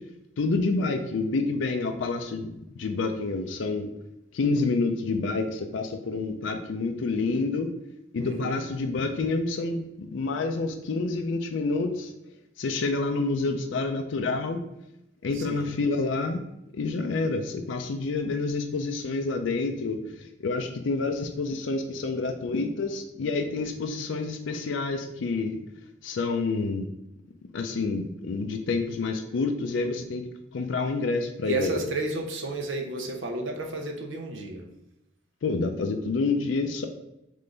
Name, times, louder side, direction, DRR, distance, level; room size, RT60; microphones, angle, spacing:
voice 1, 0.4-3.9 4.3-7.7 8.1-12.1 12.6-14.6 15.2-16.4 16.7-25.6 26.0-26.9 27.5-30.3 30.5-31.8 35.4-36.9, left 3 dB, 70° left, 5 dB, 0.4 m, -28 dB
voice 2, 8.2-8.6 15.3-15.7 31.4-34.7, right 2 dB, 80° right, 3 dB, 0.7 m, -32 dB
3.7 x 3.2 x 3.9 m, 0.86 s
head